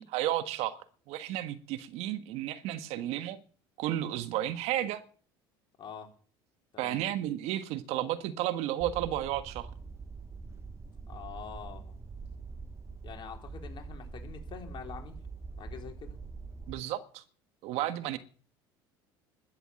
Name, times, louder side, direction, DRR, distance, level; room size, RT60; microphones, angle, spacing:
voice 1, 0.0-3.4 3.8-5.0 6.8-9.7 16.7-17.2 17.6-18.2, right 13 dB, 65° right, 11 dB, 1.5 m, -33 dB
voice 2, 5.8-6.1 6.7-7.0 11.1-12.0 13.0-15.2 15.6-16.2, left 7 dB, 45° left, 3 dB, 4.1 m, -45 dB
sound 1, 8.8-16.8, right 4 dB, 25° right, 1.1 m, -44 dB
12.5 x 10.0 x 7.7 m, 0.43 s
hypercardioid pair, 80°, 12 cm